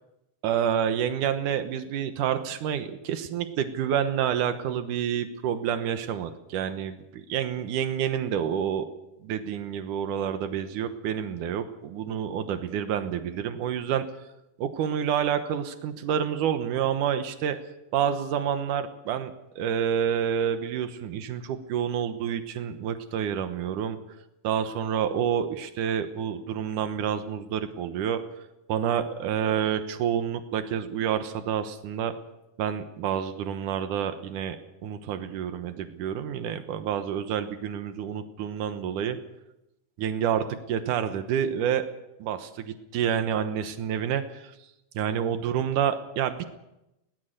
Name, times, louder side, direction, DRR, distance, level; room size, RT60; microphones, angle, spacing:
voice 1, 0.4-8.9 9.2-14.1 14.6-17.6 17.9-24.0 24.4-28.2 28.7-32.1 32.6-39.2 40.0-41.9 42.2-44.5 44.9-46.4, right 8 dB, 90° right, 9 dB, 2.7 m, -28 dB
21.5 x 18.5 x 6.6 m, 0.91 s
omnidirectional pair, 3.5 m